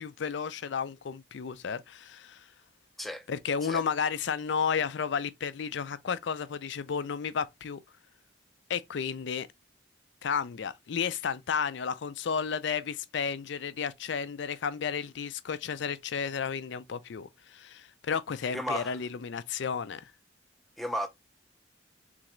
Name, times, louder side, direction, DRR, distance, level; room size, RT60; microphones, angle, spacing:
voice 1, 0.0-2.4 3.3-7.8 8.7-9.5 10.2-20.1, left 6 dB, 70° left, 0.4 m, -32 dB
voice 2, 18.5-19.0 20.8-21.1, equal, ahead, 0.5 m, -34 dB
3.8 x 3.4 x 3.0 m
head